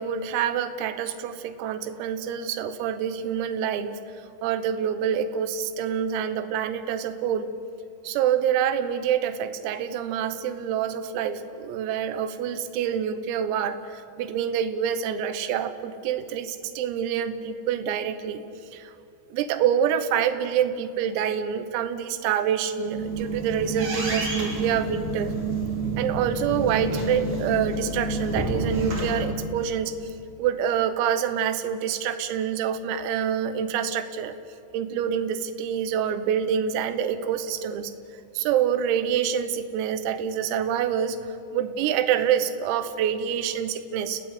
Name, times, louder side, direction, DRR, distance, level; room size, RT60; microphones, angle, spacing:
voice 1, 0.0-4.0 4.4-7.5 8.0-18.4 18.7-18.9 19.3-25.3 26.0-29.9 30.4-34.3 34.7-37.9 38.4-41.2 41.5-44.2, right 8 dB, 85° right, 10 dB, 3.9 m, -26 dB
sound 1, 22.7-29.2, right 2 dB, 40° right, 5.4 m, -29 dB
30.0 x 17.5 x 8.5 m, 2.6 s
omnidirectional pair, 5.9 m